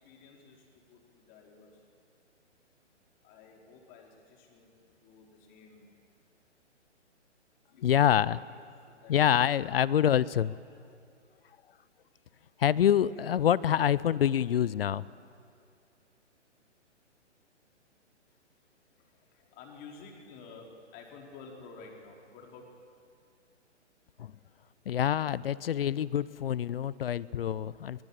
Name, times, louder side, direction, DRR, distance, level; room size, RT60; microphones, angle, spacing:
voice 1, 0.0-1.8 3.2-6.0 7.7-8.0 8.7-9.4 9.8-10.1 18.3-18.4 19.0-22.7, left 4 dB, 25° left, 0 dB, 4.5 m, -52 dB
voice 2, 7.8-8.4 9.1-10.5 12.6-15.1 24.2-24.3 24.9-28.0, left 10 dB, 50° left, 20 dB, 0.6 m, -26 dB
23.5 x 23.0 x 8.8 m, 2.4 s
figure-of-eight pair, 130°, 36 cm